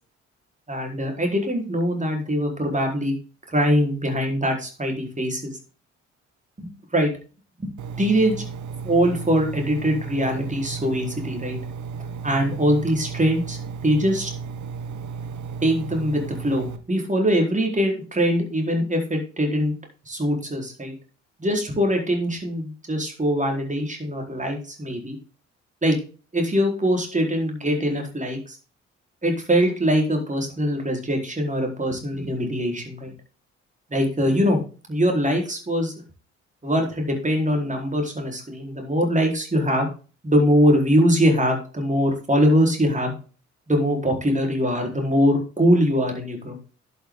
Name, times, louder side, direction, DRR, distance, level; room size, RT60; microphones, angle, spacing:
voice 1, 0.7-3.1 3.5-5.5 6.6-7.1 7.6-7.7 8.0-8.3 8.8-11.6 12.2-14.3 15.6-19.7 20.1-20.9 21.4-25.2 25.8-26.0 26.3-28.6 29.2-33.1 33.9-34.6 34.9-35.9 36.6-39.9 40.2-43.1 43.7-46.6, equal, 20° right, 2 dB, 4.4 m, -22 dB
Engine, 7.8-16.8, right 5 dB, 55° right, 1.4 m, -34 dB
11.5 x 7.1 x 3.9 m, 0.35 s
figure-of-eight pair, 45°, 36 cm